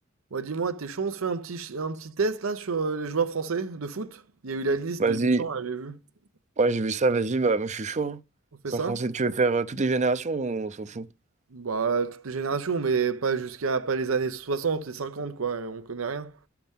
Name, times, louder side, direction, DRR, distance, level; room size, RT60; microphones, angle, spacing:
voice 1, 0.3-6.0 8.6-9.0 11.5-16.3, right 5 dB, 90° right, 0.7 m, -29 dB
voice 2, 5.0-5.4 6.6-8.2 8.7-11.1, right 3 dB, 35° right, 0.5 m, -25 dB
12.0 x 5.8 x 3.6 m
head